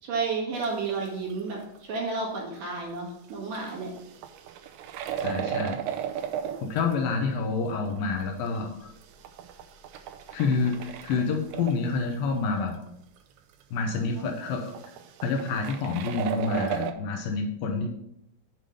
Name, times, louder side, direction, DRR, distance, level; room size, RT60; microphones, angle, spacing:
voice 1, 0.0-3.9 13.9-14.3, right 4 dB, 60° right, -3 dB, 3.0 m, -32 dB
sound 1, 0.5-1.3 1.6-1.8 2.1-2.2 2.9-3.0 3.5-6.9 7.3-7.4 7.7-8.2 8.7-12.2 12.6-12.7 12.9-13.0 13.2-13.6 14.3-16.9, right 9 dB, 80° right, 2.5 m, -35 dB
voice 2, 5.2-5.8 6.6-8.9 10.3-12.8 13.7-14.7 15.2-17.9, left 4 dB, 75° left, 3 dB, 2.3 m, -28 dB
7.6 x 5.0 x 5.4 m, 0.79 s
omnidirectional pair, 4.5 m